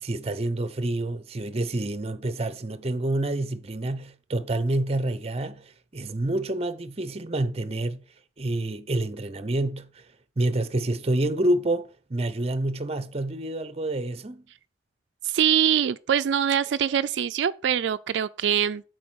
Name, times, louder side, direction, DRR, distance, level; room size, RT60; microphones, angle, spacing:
voice 1, 0.0-8.0 8.4-10.0 10.4-14.4, right 1 dB, 35° right, 0.7 m, -28 dB
voice 2, 15.2-18.8, right 9 dB, 80° right, 0.3 m, -23 dB
7.7 x 4.6 x 6.1 m
head